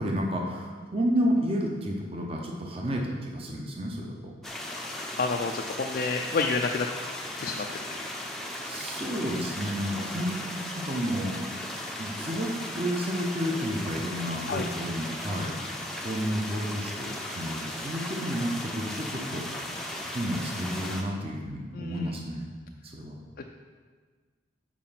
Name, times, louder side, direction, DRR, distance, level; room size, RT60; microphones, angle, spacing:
voice 1, 0.0-4.3 8.6-10.4 10.6-11.4 12.0-15.6 16.0-19.6 20.1-22.5 22.8-23.2, equal, 30° right, 0 dB, 0.9 m, -31 dB
sound 1, 4.4-21.0, left 1 dB, ahead, 0.6 m, -37 dB
voice 2, 5.2-6.9 7.4-7.6 14.5-14.7 21.7-22.1, left 4 dB, 50° left, 2 dB, 0.4 m, -29 dB
7.3 x 4.9 x 5.7 m, 1.5 s
head